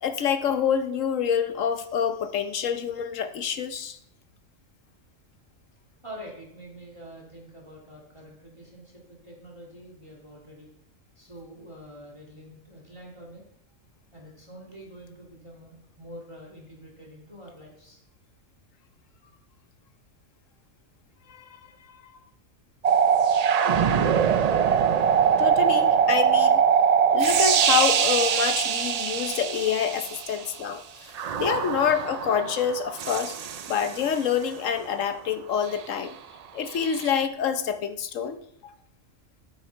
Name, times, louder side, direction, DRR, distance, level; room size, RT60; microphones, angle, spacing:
voice 1, 0.0-4.0 21.3-21.4 25.4-26.6 27.1-31.1 31.4-33.4 33.7-36.2 36.5-38.4, left 7 dB, 85° left, 10 dB, 1.2 m, -27 dB
voice 2, 6.0-10.7 11.2-13.4 14.1-18.0, equal, 25° right, -1 dB, 2.2 m, -46 dB
sound 1, 22.8-30.4 31.2-34.2 36.8-37.3, right 7 dB, 75° right, 0.3 m, -22 dB
13.5 x 6.2 x 4.5 m, 0.73 s
omnidirectional pair, 1.3 m